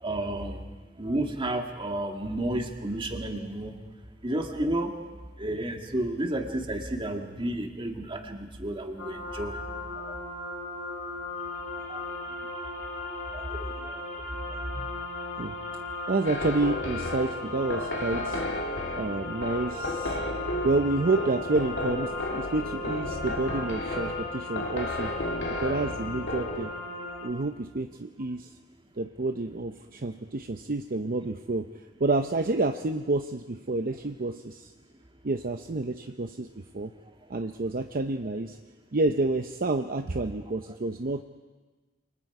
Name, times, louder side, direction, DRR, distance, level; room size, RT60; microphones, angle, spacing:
voice 1, 0.0-0.6 1.0-3.7 4.2-4.9 5.4-9.6 10.0-10.1 11.9-12.1 13.3-14.0 14.7-14.9 25.5-25.6 40.5-40.6, right 1 dB, 25° right, 3 dB, 2.0 m, -32 dB
sound 1, 9.0-27.3, left 2 dB, 90° left, 6.4 m, -37 dB
voice 2, 16.1-18.4 18.9-20.2 20.6-25.1 25.5-26.7 27.2-28.5 29.0-31.7 32.0-34.7 35.2-36.5 36.7-36.9 37.3-38.6 38.9-41.2, right 2 dB, 45° right, 7 dB, 0.7 m, -29 dB
sound 2, 16.2-26.7, left 1 dB, 65° left, 2.7 m, -33 dB
28.0 x 24.5 x 4.9 m, 1.3 s
head